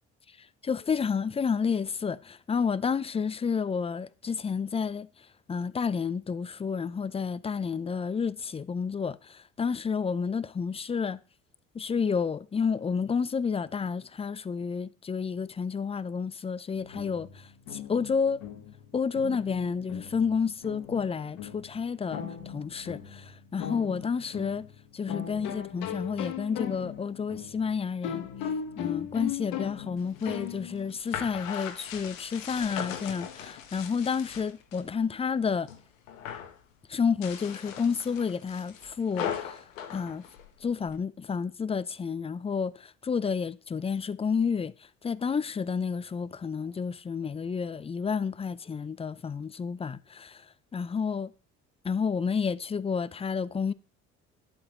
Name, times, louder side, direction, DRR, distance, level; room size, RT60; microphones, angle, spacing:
voice 1, 0.6-5.1 5.5-11.2 11.7-18.4 18.9-24.7 24.9-28.3 28.8-35.7 36.9-39.6 39.9-40.2 40.6-44.7 45.0-50.4 50.7-51.3 51.8-53.7, left 6 dB, 15° left, 0.4 m, -30 dB
sound 1, 16.7-31.0, left 9 dB, 65° left, 1.4 m, -38 dB
sound 2, 30.0-34.9 35.3-35.8 36.1-36.6 37.1-41.0, left 9 dB, 85° left, 1.1 m, -39 dB
11.0 x 7.8 x 3.0 m
hypercardioid pair, 60°, 38 cm